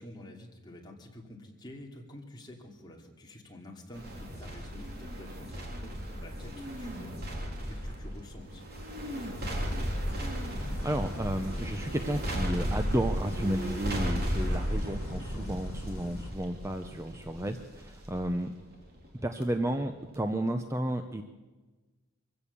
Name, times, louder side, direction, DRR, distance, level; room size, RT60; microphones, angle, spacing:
voice 1, 0.0-8.7 9.0-9.8 17.3-17.6, left 1 dB, 20° left, 0 dB, 2.9 m, -49 dB
sound 1, 3.9-19.4 19.8-19.9, equal, 45° right, 3.8 m, -35 dB
voice 2, 10.4-18.6 19.2-21.2, right 1 dB, 15° right, 7 dB, 0.7 m, -32 dB
sound 2, 10.6-16.3, equal, 75° left, 2.1 m, -43 dB
24.0 x 16.0 x 6.9 m, 1.3 s
head